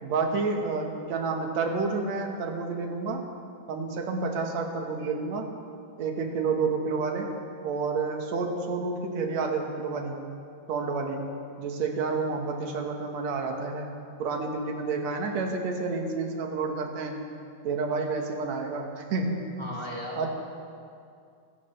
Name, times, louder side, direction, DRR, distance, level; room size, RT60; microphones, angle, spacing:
voice 1, 0.0-3.3 3.7-5.5 6.0-7.3 7.6-10.2 10.7-11.3 11.6-13.9 14.2-17.2 17.6-19.5 20.2-20.3, right 4 dB, 60° right, 2 dB, 2.1 m, -29 dB
voice 2, 19.6-20.3, equal, 15° right, -5 dB, 1.2 m, -36 dB
25.5 x 13.5 x 3.3 m, 2.4 s
omnidirectional pair, 4.5 m